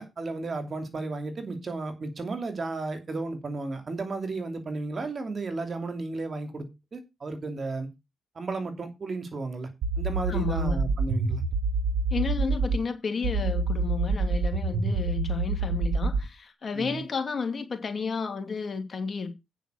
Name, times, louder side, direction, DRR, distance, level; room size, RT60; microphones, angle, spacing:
voice 1, 0.0-6.7 6.9-7.9 8.3-9.7 10.0-11.4 16.7-17.0, right 3 dB, 45° right, 2.7 m, -33 dB
sound 1, 9.8-12.8 13.2-16.3, right 3 dB, 85° right, 1.2 m, -26 dB
voice 2, 10.3-11.0 12.1-19.3, left 5 dB, 45° left, 2.4 m, -32 dB
9.5 x 5.4 x 6.2 m
cardioid pair, 70°, 0 cm